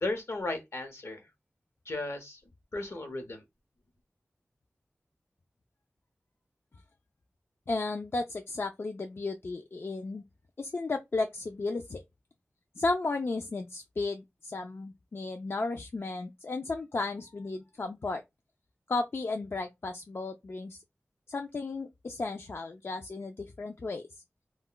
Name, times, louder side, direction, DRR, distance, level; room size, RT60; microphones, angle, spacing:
voice 1, 0.0-1.3 1.9-2.4 2.7-3.4, left 2 dB, 75° left, 0.8 m, -35 dB
voice 2, 7.7-10.2 10.6-12.0 12.8-18.2 18.9-20.8 21.3-24.1, left 3 dB, 60° left, 0.3 m, -34 dB
2.2 x 2.2 x 3.7 m
wide cardioid pair, 50°, 5 cm